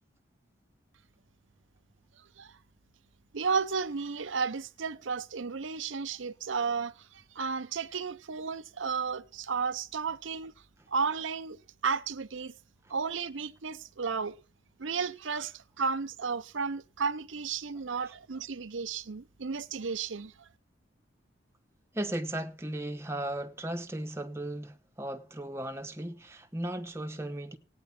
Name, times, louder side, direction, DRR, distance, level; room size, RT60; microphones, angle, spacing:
voice 1, 3.3-10.5 10.9-12.5 12.9-14.4 14.8-20.5, right 5 dB, 80° right, 0.7 m, -33 dB
voice 2, 21.9-27.6, right 1 dB, 15° right, 1.0 m, -36 dB
16.5 x 9.5 x 5.9 m
head